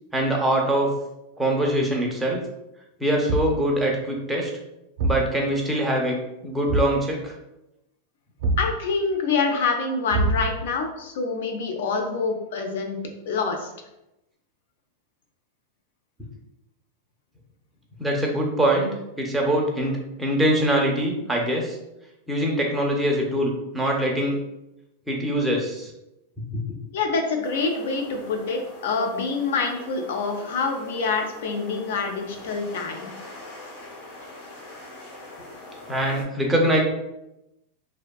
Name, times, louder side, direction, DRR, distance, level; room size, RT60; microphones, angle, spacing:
voice 1, 0.1-0.9 1.4-2.4 3.0-4.5 5.0-6.2 6.4-7.3 18.0-18.9 19.2-21.8 22.3-24.4 25.1-25.9 26.5-26.6 35.9-36.8, right 1 dB, 5° right, -1 dB, 0.4 m, -23 dB
Thump thud, 3.3-3.7 5.0-5.3 6.7-7.0 8.4-8.8 10.1-10.7, right 2 dB, 65° right, 0.5 m, -24 dB
voice 2, 8.6-13.0 13.3-13.7 26.9-33.1, left 4 dB, 75° left, 4 dB, 0.5 m, -26 dB
sound 1, 27.4-36.2, left 2 dB, 60° left, 1.0 m, -43 dB
2.6 x 2.1 x 2.2 m, 0.89 s
supercardioid pair, 155°, 0 cm